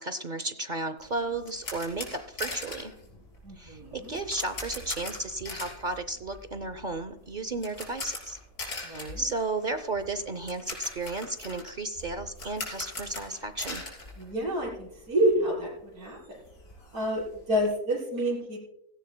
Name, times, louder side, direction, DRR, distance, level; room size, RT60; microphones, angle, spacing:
voice 1, 0.0-2.9 3.6-8.4 8.9-13.8, right 2 dB, 45° right, 10 dB, 0.6 m, -33 dB
sound 1, 1.0-15.0 15.2-15.4 15.8-15.9 16.1-17.7, left 2 dB, 85° left, 4.5 m, -41 dB
voice 2, 3.4-4.1 8.8-9.2 14.2-16.4 16.9-17.2 17.5-18.6, right 1 dB, 90° right, -4 dB, 4.8 m, -28 dB
16.5 x 16.0 x 2.2 m, 0.80 s
omnidirectional pair, 1.6 m